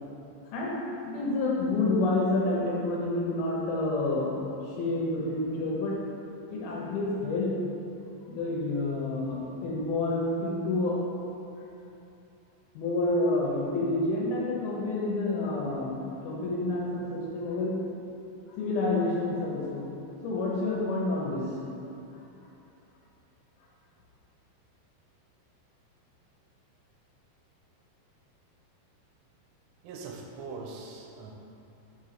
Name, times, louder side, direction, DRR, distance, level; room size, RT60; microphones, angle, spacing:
voice 1, 1.1-6.0 6.5-7.6 8.3-11.0 12.8-17.8 18.5-19.9 20.2-21.6, left 2 dB, 75° left, -4 dB, 2.3 m, -29 dB
voice 2, 29.8-31.3, right 4 dB, 85° right, 0 dB, 3.1 m, -41 dB
6.4 x 5.4 x 5.8 m, 2.9 s
omnidirectional pair, 5.6 m